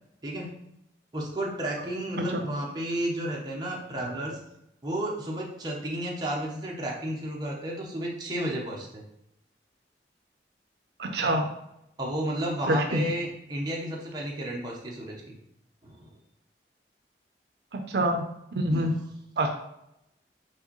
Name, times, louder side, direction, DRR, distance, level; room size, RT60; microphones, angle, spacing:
voice 1, 0.2-0.5 1.1-4.4 4.8-9.0 11.2-11.3 12.0-15.4 15.8-16.1 18.7-18.9, right 1 dB, 25° right, -3 dB, 0.9 m, -32 dB
voice 2, 11.0-11.5 12.7-13.0 17.7-18.2 18.5-18.9 19.4-19.5, right 1 dB, 70° right, 4 dB, 0.5 m, -26 dB
4.7 x 3.8 x 3.0 m, 0.81 s
head